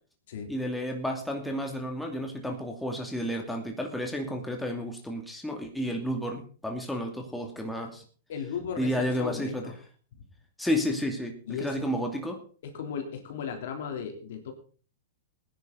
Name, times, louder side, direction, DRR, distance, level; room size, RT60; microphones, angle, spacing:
voice 1, 0.5-8.0 8.8-9.6 10.6-12.4, equal, 5° left, 2 dB, 2.6 m, -31 dB
voice 2, 8.3-9.8 10.1-10.3 11.5-11.8 12.6-14.5, left 7 dB, 65° left, 4 dB, 3.6 m, -36 dB
18.5 x 10.5 x 4.0 m, 0.40 s
hypercardioid pair, 115°, 0 cm